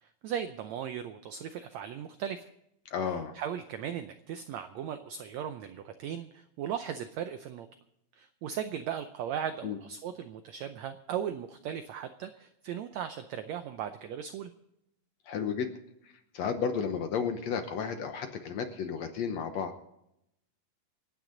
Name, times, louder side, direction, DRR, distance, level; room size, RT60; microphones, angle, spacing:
voice 1, 0.0-2.5 3.0-7.7 8.1-14.5, right 9 dB, 85° right, 9 dB, 1.6 m, -37 dB
voice 2, 2.9-3.4 9.6-9.8 15.3-15.7 16.3-19.7, left 6 dB, 65° left, 7 dB, 1.8 m, -32 dB
27.0 x 9.3 x 3.9 m, 0.81 s
omnidirectional pair, 3.9 m